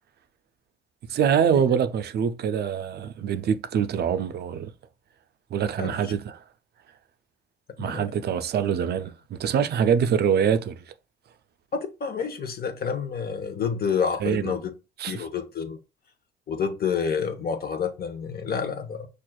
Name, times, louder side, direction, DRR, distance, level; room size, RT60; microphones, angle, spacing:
voice 1, 1.1-4.7 5.5-6.4 7.8-10.8 14.2-14.4 15.0-15.3, right 8 dB, 55° right, 0.4 m, -24 dB
voice 2, 5.8-6.1 7.8-8.1 11.7-14.7 15.1-15.8 16.5-19.1, left 6 dB, 50° left, 0.8 m, -29 dB
6.0 x 2.4 x 2.2 m
cardioid pair, 90°, 20 cm